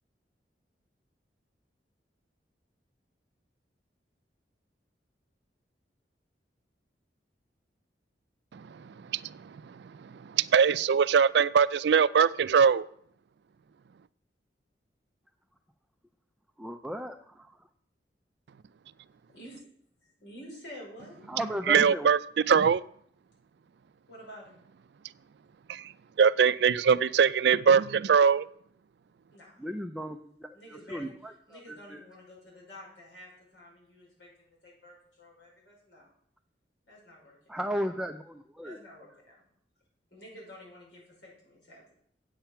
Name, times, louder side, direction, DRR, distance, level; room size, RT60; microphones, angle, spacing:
voice 1, 8.5-12.9 21.7-22.8 25.7-25.9 26.2-28.5, right 6 dB, 65° right, 16 dB, 0.4 m, -23 dB
voice 2, 16.6-17.5 21.3-22.1 29.6-32.0 37.5-38.8, equal, 5° right, 5 dB, 0.4 m, -36 dB
voice 3, 20.2-21.2 24.1-24.5 29.3-29.5 30.5-31.1 31.5-36.1 36.9-37.6 38.6-39.4 40.1-42.0, equal, 90° left, -3 dB, 5.1 m, -49 dB
8.9 x 8.0 x 5.7 m, 0.65 s
head